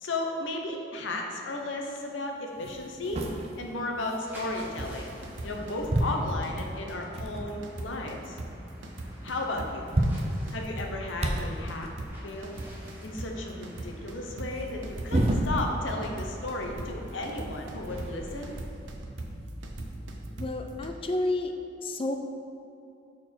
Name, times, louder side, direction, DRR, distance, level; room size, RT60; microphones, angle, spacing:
voice 1, 0.0-3.2 3.6-5.1 5.4-8.4 9.2-9.9 10.5-11.9 12.2-12.6 13.0-18.5, left 2 dB, 90° left, 1 dB, 0.8 m, -34 dB
sound 1, 2.0-2.1 2.5-5.5 5.8-7.6 8.1-8.2 8.4-8.5 9.4-9.5 9.7-12.0 14.5-16.0 16.3-18.6 19.6-19.7 20.7-20.8, right 1 dB, 35° right, 0.6 m, -32 dB
sound 2, 4.2-18.6, equal, 10° right, 1.3 m, -47 dB
sound 3, 4.8-20.9, right 1 dB, 75° right, 0.7 m, -39 dB
voice 2, 20.3-21.5 21.8-22.2, left 2 dB, 30° left, 5 dB, 0.4 m, -30 dB
6.0 x 4.6 x 4.4 m, 2.7 s
head